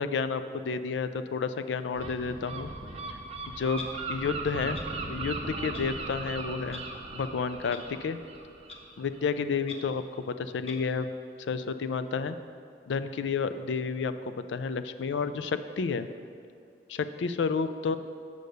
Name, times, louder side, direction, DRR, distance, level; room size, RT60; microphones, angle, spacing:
voice 1, 0.0-2.7 3.6-6.8 7.1-8.2 9.0-11.1 11.5-12.4 12.9-16.1 16.9-18.0, left 5 dB, 85° left, 11 dB, 0.4 m, -31 dB
Gull seagull, 1.9-9.5, right 3 dB, 35° right, 0.6 m, -38 dB
Clock, 3.7-3.9 4.7-4.9 5.7-5.8 6.7-6.8 7.7-7.8 8.7-8.8 9.7-9.8 10.7-10.8, left 4 dB, 35° left, 0.6 m, -42 dB
6.7 x 5.2 x 6.6 m, 2.3 s
head